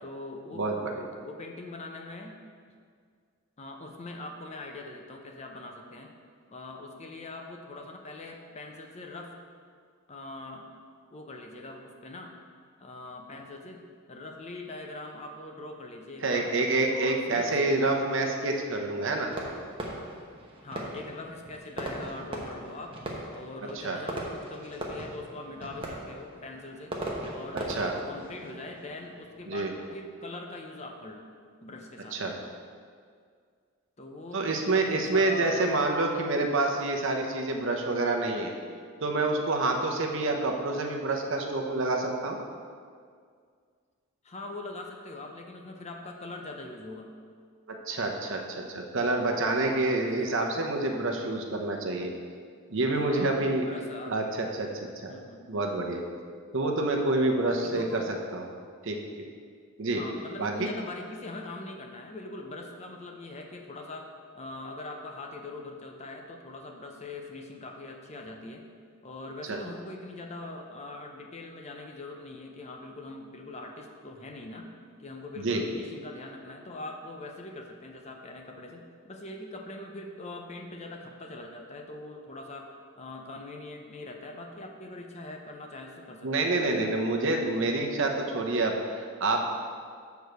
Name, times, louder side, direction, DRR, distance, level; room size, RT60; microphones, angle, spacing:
voice 1, 0.0-0.7 1.2-2.4 3.6-6.1 6.5-9.4 10.1-10.7 11.1-12.3 12.8-16.5 16.9-17.6 20.6-23.0 23.3-27.0 27.3-31.2 31.6-32.3 34.0-35.7 39.9-40.2 44.2-47.1 49.8-50.3 52.9-54.2 55.1-55.5 57.4-58.1 59.9-68.6 69.0-74.7 75.0-87.0, left 2 dB, 30° left, 3 dB, 0.6 m, -42 dB
voice 2, 0.5-0.9 16.2-19.3 23.8-24.0 27.7-27.9 29.5-29.7 32.1-32.3 34.3-38.5 39.0-42.4 47.9-52.1 52.7-53.7 54.1-55.1 55.5-56.0 56.5-58.5 58.8-59.0 59.8-60.0 60.4-60.7 69.5-69.6 75.4-75.6 86.2-89.6, right 2 dB, 60° right, 2 dB, 0.8 m, -27 dB
Fireworks, 19.3-29.9, right 1 dB, 25° right, 1.0 m, -39 dB
6.8 x 4.6 x 6.7 m, 2.1 s
head